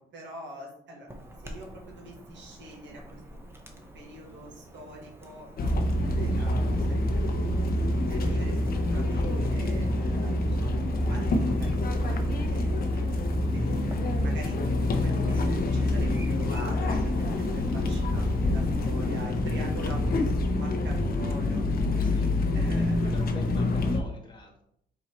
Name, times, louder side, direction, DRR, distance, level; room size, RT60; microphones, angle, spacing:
voice 1, 0.0-7.6 8.1-14.6 14.9-21.6 22.5-23.0, right 1 dB, 65° right, -1 dB, 1.4 m, -45 dB
Chirp tweet / Buzz, 1.1-18.9, right 1 dB, 10° right, 0.8 m, -45 dB
sound 1, 5.6-24.0, left 1 dB, 50° left, 0.7 m, -26 dB
voice 2, 22.0-22.4 23.0-24.6, left 1 dB, 25° left, 1 dB, 1.3 m, -45 dB
4.2 x 2.7 x 4.2 m, 0.72 s
cardioid pair, 90°, 20 cm